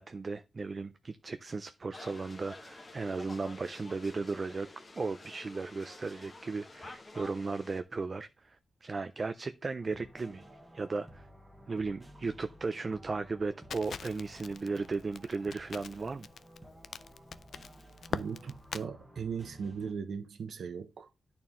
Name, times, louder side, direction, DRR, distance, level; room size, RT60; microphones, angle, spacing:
voice 1, 0.0-4.7 5.0-10.4 10.7-11.3 11.7-16.3, right 4 dB, 30° right, 0.3 m, -36 dB
sound 1, 1.9-7.8, left 2 dB, 20° left, 0.8 m, -50 dB
sound 2, 9.8-19.9, equal, 10° right, 1.1 m, -54 dB
Crackle, 13.7-18.9, left 6 dB, 60° left, 0.4 m, -42 dB
voice 2, 18.1-21.1, right 6 dB, 65° right, 0.8 m, -38 dB
10.5 x 4.3 x 3.6 m
wide cardioid pair, 175°, 0 cm